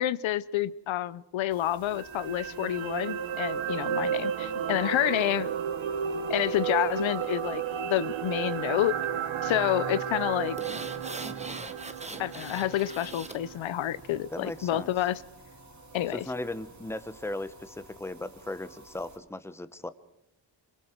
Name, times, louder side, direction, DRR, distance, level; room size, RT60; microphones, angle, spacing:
voice 1, 0.0-5.5 6.3-8.9 9.4-10.6 12.2-15.2 15.9-16.2, left 13 dB, 85° left, 17 dB, 0.8 m, -29 dB
sound 1, 1.5-19.2, right 2 dB, 40° right, 2.4 m, -53 dB
sound 2, 1.9-14.2 14.6-14.7, right 8 dB, 90° right, 1.6 m, -33 dB
sound 3, 10.6-13.4 13.8-13.9, right 2 dB, 15° right, 1.1 m, -41 dB
voice 2, 14.3-14.9 16.1-19.9, left 2 dB, 5° left, 12 dB, 1.0 m, -37 dB
26.0 x 23.0 x 4.6 m, 0.83 s
cardioid pair, 110°, 45 cm